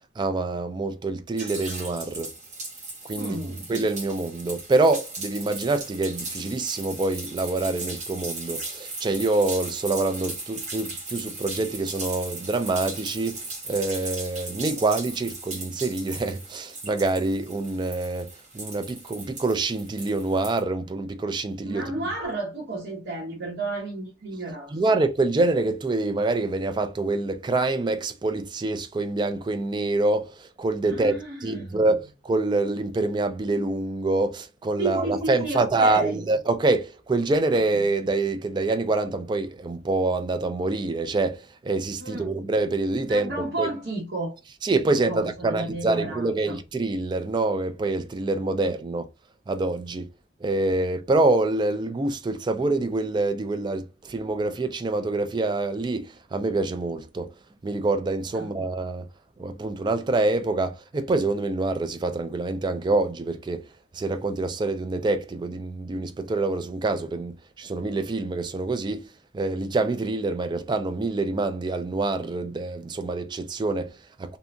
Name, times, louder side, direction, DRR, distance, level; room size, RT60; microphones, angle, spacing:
voice 1, 0.2-2.3 3.0-3.4 3.7-21.8 24.7-43.7 44.6-49.1 49.5-50.1 50.4-57.3 57.6-59.1 59.4-63.7 63.9-69.1 69.3-74.4, right 2 dB, 25° right, 0.3 m, -26 dB
sound 1, 1.4-20.6, right 3 dB, 45° right, 1.1 m, -37 dB
voice 2, 3.2-3.7 21.6-24.9 30.8-31.8 34.8-36.2 42.0-42.3 43.1-44.4 44.9-46.6 58.3-58.5, right 2 dB, 70° right, 1.0 m, -32 dB
2.7 x 2.5 x 2.2 m
head